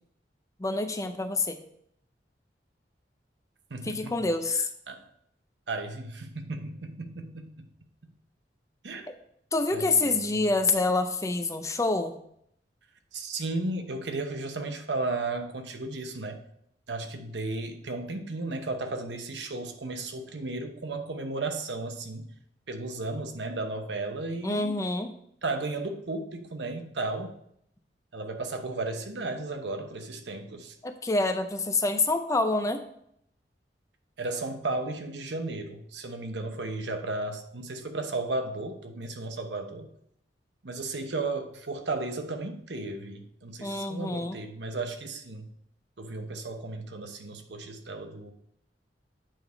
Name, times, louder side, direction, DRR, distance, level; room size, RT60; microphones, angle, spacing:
voice 1, 0.6-1.6 3.8-4.7 9.5-12.1 24.4-25.1 30.8-32.8 43.6-44.4, left 3 dB, 20° left, 7 dB, 0.5 m, -27 dB
voice 2, 3.7-4.1 4.9-5.0 5.7-7.7 8.8-9.1 9.7-10.4 13.1-16.4 16.9-22.3 22.7-24.7 25.4-27.3 28.1-30.7 34.2-39.9 40.6-45.5 46.0-48.3, right 2 dB, 70° right, 6 dB, 0.9 m, -34 dB
9.0 x 3.6 x 4.5 m, 0.70 s
head